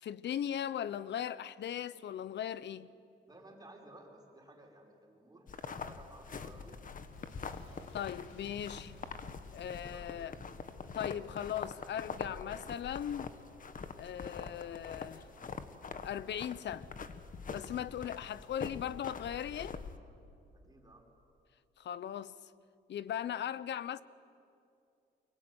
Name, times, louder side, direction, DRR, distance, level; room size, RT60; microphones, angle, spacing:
voice 1, 0.0-2.9 7.9-8.9 9.5-10.3 10.9-13.3 14.0-15.3 16.0-16.9 17.5-19.8 21.8-22.3 22.9-24.0, left 10 dB, 60° left, 0.8 m, -38 dB
voice 2, 3.3-6.9 9.6-10.5 20.5-21.1, right 2 dB, 20° right, 5.3 m, -57 dB
sound 1, 5.5-20.0, left 5 dB, 45° left, 1.5 m, -44 dB
Boom, 7.1-12.7, left 3 dB, 90° left, 3.2 m, -57 dB
24.5 x 22.0 x 9.5 m
cardioid pair, 90°, 20 cm